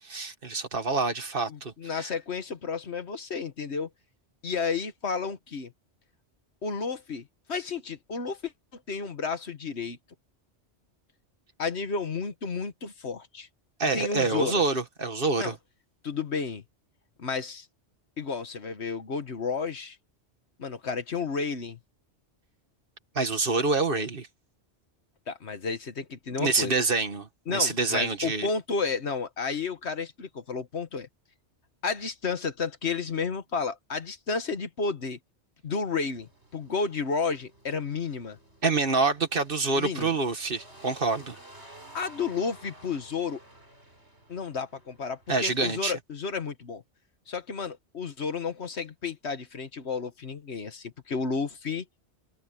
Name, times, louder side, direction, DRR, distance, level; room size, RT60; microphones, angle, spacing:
voice 1, 0.1-2.1 13.8-15.5 23.2-24.3 26.4-28.5 38.6-41.4 45.3-45.9, right 3 dB, 55° right, 1.8 m, -27 dB
voice 2, 1.5-3.9 4.4-5.7 6.6-10.0 11.6-13.5 13.9-14.6 15.4-15.6 16.0-16.6 17.2-17.7 18.2-20.0 20.6-21.8 25.3-26.7 27.5-31.1 31.8-35.2 35.6-38.4 39.7-40.1 41.9-43.4 44.3-46.8 47.3-51.8, left 5 dB, 75° left, 1.7 m, -32 dB
sound 1, 36.1-45.8, right 1 dB, 75° right, 7.1 m, -53 dB
omnidirectional pair, 1.1 m